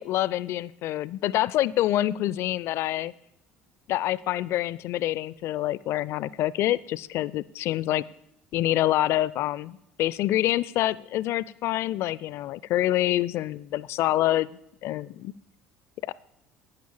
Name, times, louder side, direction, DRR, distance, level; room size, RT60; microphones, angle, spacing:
voice 1, 0.0-3.1 3.9-8.0 8.5-14.5 14.8-15.3 16.0-16.1, left 14 dB, 50° left, 21 dB, 0.4 m, -26 dB
10.5 x 9.3 x 7.3 m, 0.82 s
figure-of-eight pair, 60°, 6 cm